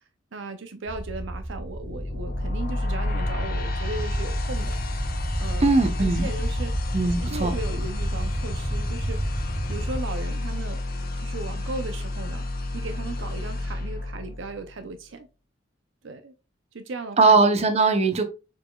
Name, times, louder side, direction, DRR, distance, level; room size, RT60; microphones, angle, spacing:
voice 1, 0.3-4.8 5.4-6.9 7.2-9.3 9.7-10.8 11.2-12.5 12.7-15.3 16.0-16.3 16.7-17.4, right 3 dB, 70° right, 0.6 m, -36 dB
sound 1, 0.9-10.0, right 1 dB, 15° right, 0.3 m, -32 dB
sound 2, 1.8-14.8, left 2 dB, 50° left, 0.7 m, -30 dB
voice 2, 5.6-6.3 6.9-7.5 17.2-18.2, right 3 dB, 35° right, 0.7 m, -20 dB
4.8 x 4.6 x 2.3 m
head